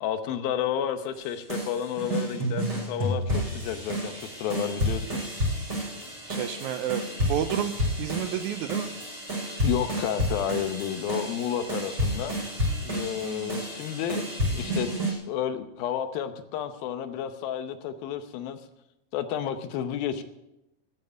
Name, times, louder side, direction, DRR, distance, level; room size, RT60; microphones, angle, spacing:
voice 1, 0.0-5.2 9.6-12.3 12.8-14.2 14.5-18.6 19.1-20.2, left 9 dB, 85° left, 9 dB, 2.8 m, -31 dB
sound 1, 1.1-15.1, equal, 25° right, 7.3 m, -30 dB
voice 2, 6.3-7.7 8.0-8.9 13.2-13.5, right 11 dB, 85° right, 10 dB, 1.7 m, -30 dB
13.5 x 9.2 x 9.2 m, 0.88 s
omnidirectional pair, 4.2 m